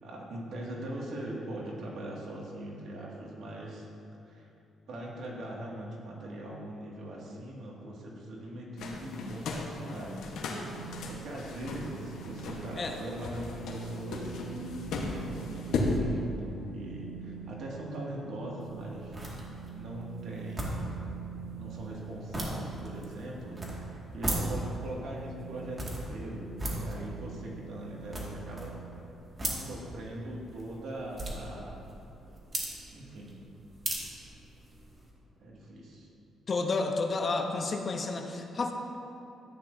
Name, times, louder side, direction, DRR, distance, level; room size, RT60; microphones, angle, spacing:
voice 1, 0.0-3.9 4.2-4.5 4.9-10.3 11.0-19.2 19.7-21.0 21.5-28.7 29.5-31.9 32.9-33.4 35.4-36.1, right 1 dB, 70° right, -3 dB, 2.2 m, -41 dB
sound 1, 8.8-16.0, left 3 dB, 80° left, 1.3 m, -36 dB
sound 2, 10.6-29.0, right 10 dB, 90° right, 0.7 m, -46 dB
sound 3, 18.6-35.1, right 1 dB, 30° right, 2.1 m, -39 dB
voice 2, 36.5-38.7, left 3 dB, 40° left, 4 dB, 0.9 m, -30 dB
13.5 x 9.5 x 2.8 m, 2.7 s
cardioid pair, 90°, 0 cm